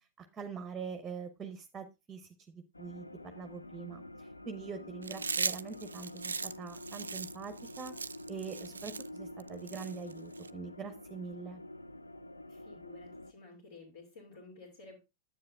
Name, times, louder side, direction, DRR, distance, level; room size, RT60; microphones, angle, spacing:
voice 1, 0.0-7.9 8.3-11.6, right 5 dB, 20° right, 9 dB, 0.7 m, -44 dB
sound 1, 2.7-13.3, left 1 dB, 80° left, 0.4 m, -48 dB
Chewing mastication, 5.0-10.5, right 5 dB, 75° right, 0.3 m, -38 dB
voice 2, 12.5-15.0, left 2 dB, 60° left, -2 dB, 2.5 m, -52 dB
9.7 x 8.1 x 2.4 m, 0.26 s
figure-of-eight pair, 90°, 0 cm